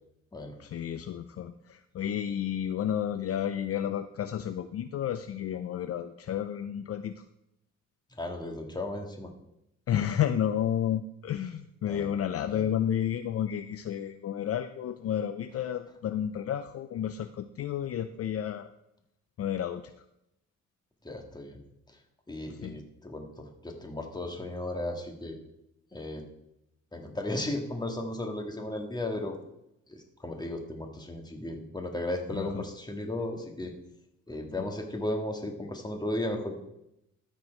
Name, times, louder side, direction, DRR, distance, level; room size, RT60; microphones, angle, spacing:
voice 1, 0.6-7.1 9.9-18.7 19.4-19.8 22.6-22.8 32.3-32.6, left 10 dB, 50° left, 10 dB, 0.5 m, -31 dB
voice 2, 8.2-9.3 11.9-12.1 12.5-12.7 21.0-21.6 22.3-25.4 25.9-26.2 26.9-29.4 29.9-33.7 34.3-36.6, left 1 dB, 15° left, 3 dB, 1.8 m, -35 dB
13.5 x 4.6 x 4.5 m, 0.83 s
cardioid pair, 90°, 30 cm